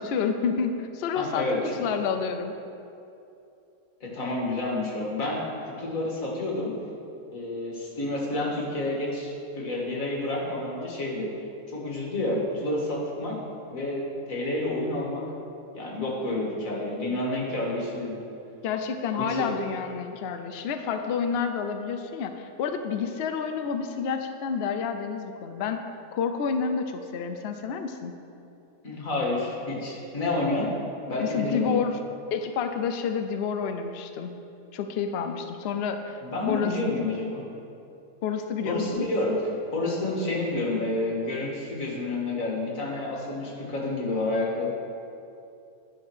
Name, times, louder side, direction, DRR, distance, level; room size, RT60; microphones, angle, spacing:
voice 1, 0.0-2.5 18.6-25.8 26.1-28.1 31.2-32.0 32.3-34.3 34.7-36.2 36.5-36.8 38.2-39.1, left 6 dB, 85° left, 7 dB, 0.5 m, -29 dB
voice 2, 1.2-1.8 4.0-5.5 5.8-6.7 7.3-11.3 11.7-13.4 13.7-15.2 15.7-18.2 19.2-19.5 28.8-30.7 31.1-31.8 36.2-37.4 38.6-39.3 39.7-44.7, left 2 dB, 55° left, -3 dB, 2.1 m, -29 dB
10.0 x 5.2 x 6.2 m, 2.7 s
omnidirectional pair, 1.8 m